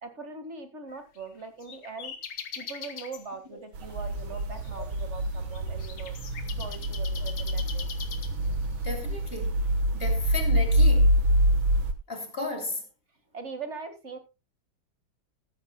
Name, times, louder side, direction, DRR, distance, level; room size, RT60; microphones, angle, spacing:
voice 1, 0.0-2.1 2.6-6.1 6.6-7.9 13.3-14.2, right 4 dB, 35° right, 2.0 m, -41 dB
sound 1, 0.9-3.2 3.9-8.7, left 7 dB, 90° left, 2.3 m, -42 dB
sound 2, 3.7-11.9, equal, 75° right, 2.1 m, -26 dB
voice 2, 8.8-9.6 9.9-11.2 12.1-12.8, left 2 dB, 30° left, 3.2 m, -34 dB
15.5 x 14.0 x 2.2 m
omnidirectional pair, 2.2 m